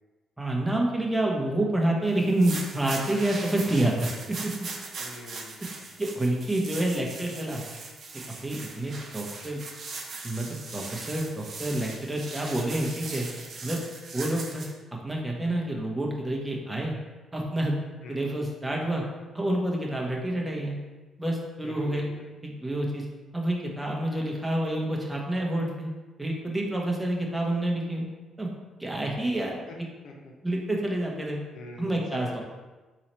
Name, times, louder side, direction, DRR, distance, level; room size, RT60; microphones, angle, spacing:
voice 1, 0.4-4.1 4.4-4.5 6.0-7.6 8.4-9.6 10.2-13.3 13.6-13.8 14.1-14.7 15.0-16.9 17.3-17.8 18.1-19.0 19.3-20.8 21.2-22.1 22.4-23.1 23.3-25.9 26.2-28.1 28.4-28.5 28.8-29.6 30.4-31.4 31.8-32.4, right 1 dB, 10° right, -1 dB, 0.9 m, -28 dB
sound 1, 2.2-14.7, right 3 dB, 55° right, 0.7 m, -40 dB
voice 2, 5.0-5.9 18.0-18.2 21.6-22.3 29.7-29.8 30.0-30.3 31.5-32.4, left 2 dB, 75° left, 1 dB, 0.8 m, -44 dB
3.9 x 3.1 x 4.2 m, 1.2 s
cardioid pair, 90°, 0 cm